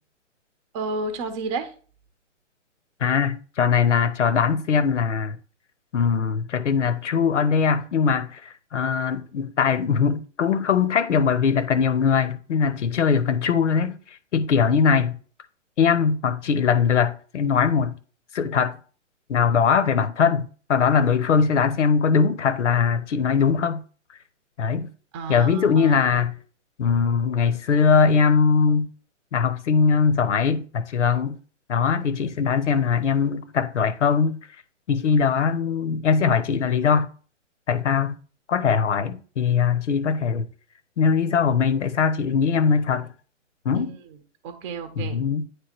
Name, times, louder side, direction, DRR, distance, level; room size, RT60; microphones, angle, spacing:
voice 1, 0.7-1.7 25.1-26.1 43.7-44.2 44.4-45.2, right 3 dB, 25° right, 0.9 m, -31 dB
voice 2, 3.0-5.4 5.9-8.4 8.7-14.0 14.3-15.2 15.8-17.9 18.3-18.8 19.3-23.8 24.6-24.9 25.3-26.4 26.8-28.9 29.3-31.4 31.7-34.4 34.9-37.1 37.7-38.2 38.5-40.5 41.0-43.1 43.6-43.9 45.0-45.4, left 6 dB, 70° left, 1.0 m, -21 dB
9.4 x 3.5 x 4.4 m
hypercardioid pair, 145°, 38 cm